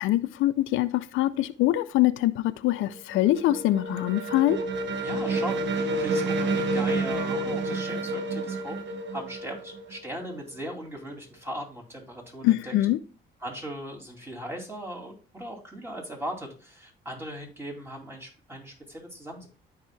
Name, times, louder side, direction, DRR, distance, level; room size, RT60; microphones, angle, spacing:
voice 1, 0.0-4.6 12.4-13.0, left 15 dB, 85° left, 0.5 m, -24 dB
sound 1, 2.8-10.5, right 2 dB, 70° right, 1.0 m, -29 dB
voice 2, 5.0-8.8 9.1-12.7 13.4-19.5, right 1 dB, 10° right, 2.7 m, -38 dB
13.0 x 4.8 x 2.3 m
cardioid pair, 90°, 20 cm